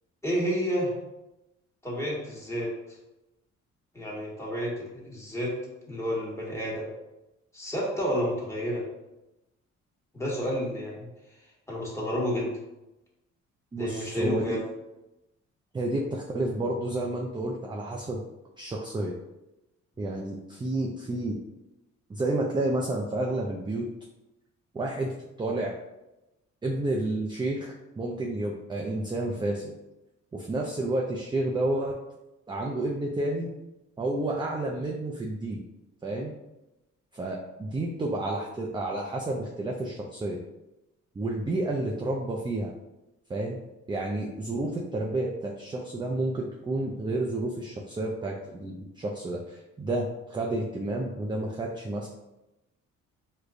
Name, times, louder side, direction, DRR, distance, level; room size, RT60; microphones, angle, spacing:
voice 1, 0.2-0.9 1.8-2.7 3.9-5.5 5.9-6.9 7.5-8.8 10.1-11.1 11.7-12.5 13.8-14.6, equal, 10° left, -5 dB, 1.3 m, -30 dB
voice 2, 13.7-14.6 15.7-18.2 18.6-19.1 20.0-21.4 22.1-23.9 24.7-25.8 26.6-29.7 30.3-32.0 32.5-33.5 34.0-35.6 36.0-36.3 37.1-40.4 41.2-42.7 43.3-43.6 43.9-52.1, right 2 dB, 15° right, -1 dB, 0.4 m, -30 dB
4.8 x 2.2 x 2.5 m, 0.96 s
cardioid pair, 90°, 30 cm